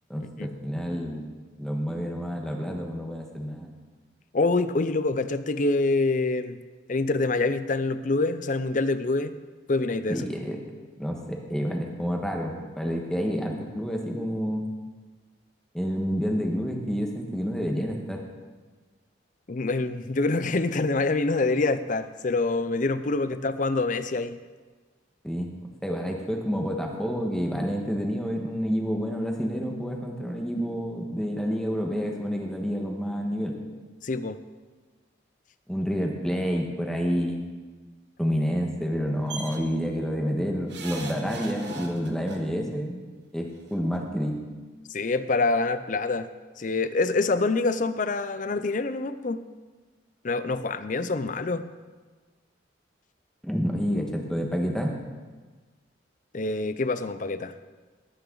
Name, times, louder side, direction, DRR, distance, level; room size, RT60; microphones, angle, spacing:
voice 1, 0.1-3.7 10.1-10.6 11.0-14.6 15.7-18.2 25.2-33.5 35.7-37.4 38.2-43.0 43.3-44.4 53.4-55.0, equal, 5° left, 1 dB, 1.4 m, -29 dB
voice 2, 4.3-6.6 6.9-9.4 9.7-10.3 19.5-24.4 34.0-34.4 44.9-46.3 46.6-49.4 50.2-51.7 56.3-57.5, left 3 dB, 40° left, 12 dB, 0.5 m, -26 dB
sound 1, 39.3-39.6 40.7-42.4 43.6-43.7 43.9-44.0, right 3 dB, 60° right, 1.4 m, -39 dB
19.5 x 9.0 x 3.9 m, 1.4 s
head